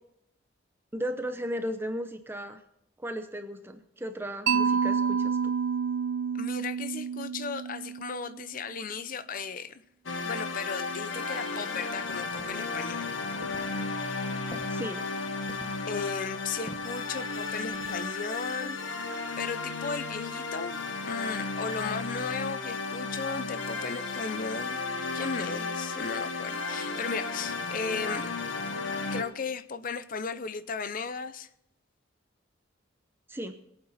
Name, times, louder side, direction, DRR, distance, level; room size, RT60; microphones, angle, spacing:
voice 1, 0.9-2.6 3.0-5.5 14.7-15.0 33.3-33.5, equal, 10° right, 8 dB, 0.7 m, -35 dB
Mallet percussion, 4.5-8.5, right 6 dB, 75° right, 0.6 m, -29 dB
voice 2, 6.3-9.8 10.2-13.1 15.9-20.8 21.1-24.8 25.1-28.3 29.1-31.5, left 5 dB, 45° left, 13 dB, 0.6 m, -36 dB
sound 1, 10.1-29.2, left 4 dB, 75° left, 1.3 m, -34 dB
sound 2, 12.3-18.2, left 1 dB, 25° left, 1.2 m, -48 dB
21.5 x 8.8 x 4.2 m, 0.78 s
head